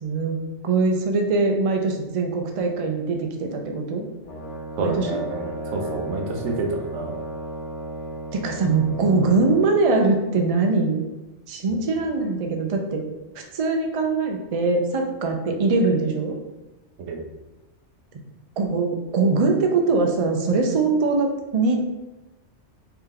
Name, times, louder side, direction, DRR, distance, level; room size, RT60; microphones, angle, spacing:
voice 1, 0.0-0.4 0.6-4.0 4.8-5.1 8.3-11.0 11.5-13.0 13.5-16.4 18.6-21.8, right 3 dB, 50° right, 3 dB, 0.4 m, -22 dB
Brass instrument, 4.2-9.7, right 1 dB, 80° left, 1.0 m, -34 dB
voice 2, 4.8-7.1 11.7-11.9 17.0-17.2, right 3 dB, 80° right, 3 dB, 0.9 m, -29 dB
3.2 x 2.9 x 3.7 m, 1.1 s
omnidirectional pair, 1.2 m